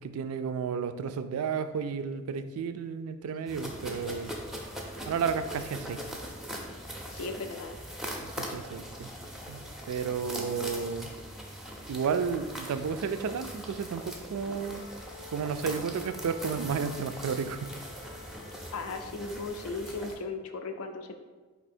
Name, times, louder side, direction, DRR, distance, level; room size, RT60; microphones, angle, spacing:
voice 1, 0.0-4.3 5.1-6.0 8.2-9.1 9.5-11.1 11.9-14.9 15.3-17.7, right 6 dB, 80° right, 10 dB, 0.3 m, -32 dB
sound 1, 3.5-20.1, equal, ahead, 0.5 m, -41 dB
voice 2, 7.1-7.8 18.7-21.1, left 3 dB, 70° left, 6 dB, 0.5 m, -36 dB
Wind instrument woodwind instrument, 14.5-18.9, left 3 dB, 90° left, 0.9 m, -51 dB
4.5 x 2.8 x 4.2 m, 1.3 s
head